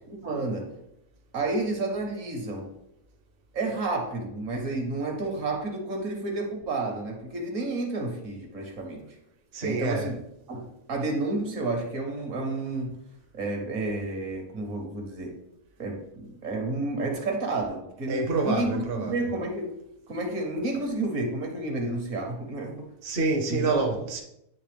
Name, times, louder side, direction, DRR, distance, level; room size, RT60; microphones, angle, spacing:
voice 1, 0.1-0.7 1.3-2.7 3.5-9.1 9.6-10.1 10.5-13.0 13.3-15.3 15.8-19.7 20.1-22.7 23.5-24.1, right 2 dB, 65° right, 1.5 m, -30 dB
voice 2, 9.5-10.1 18.1-19.1 23.0-24.2, right 3 dB, 50° right, 0.9 m, -27 dB
9.3 x 3.4 x 3.3 m
omnidirectional pair, 1.5 m